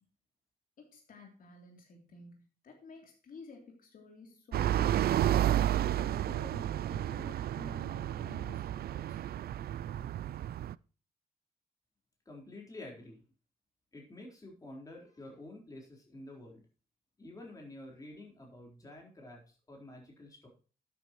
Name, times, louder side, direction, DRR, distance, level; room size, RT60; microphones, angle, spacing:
voice 1, 0.8-5.4 5.7-9.2, left 4 dB, 65° left, 2 dB, 3.1 m, -53 dB
sound 1, 4.5-10.7, right 12 dB, 85° right, 0.4 m, -31 dB
voice 2, 12.3-13.2 13.9-16.6 17.2-20.5, left 1 dB, 20° left, -1 dB, 4.2 m, -49 dB
12.5 x 9.2 x 3.0 m, 0.37 s
wide cardioid pair, 170°, 16 cm